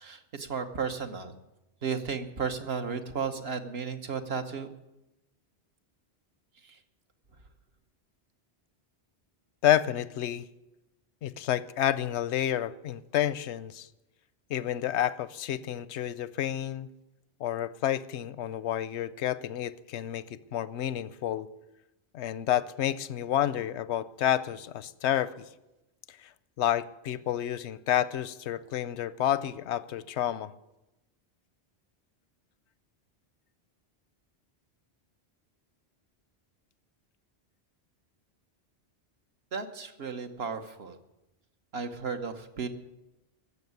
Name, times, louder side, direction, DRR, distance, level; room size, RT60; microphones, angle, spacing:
voice 1, 0.0-1.4 1.8-4.7 6.6-6.8 39.5-41.0 41.7-42.7, right 5 dB, 65° right, 6 dB, 1.3 m, -34 dB
voice 2, 9.6-10.4 11.2-13.9 14.5-16.9 17.4-21.5 22.1-25.4 26.1-26.3 26.6-30.5, left 11 dB, 85° left, 17 dB, 0.9 m, -29 dB
15.0 x 7.3 x 9.5 m, 0.95 s
omnidirectional pair, 1.1 m